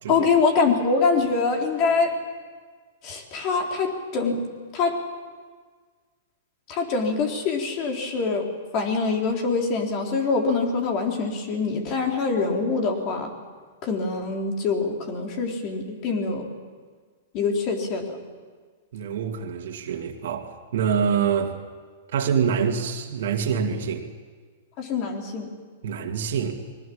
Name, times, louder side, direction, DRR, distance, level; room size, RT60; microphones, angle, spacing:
voice 1, 0.1-2.1 3.0-4.4 4.7-4.9 6.7-8.5 8.7-13.3 13.8-16.4 17.3-18.2 24.8-25.5, left 4 dB, 40° left, 2 dB, 3.9 m, -24 dB
voice 2, 18.9-21.6 22.1-24.0 25.8-26.5, right 7 dB, 70° right, 2 dB, 2.4 m, -25 dB
22.0 x 19.0 x 8.8 m, 1.5 s
hypercardioid pair, 120°, 0 cm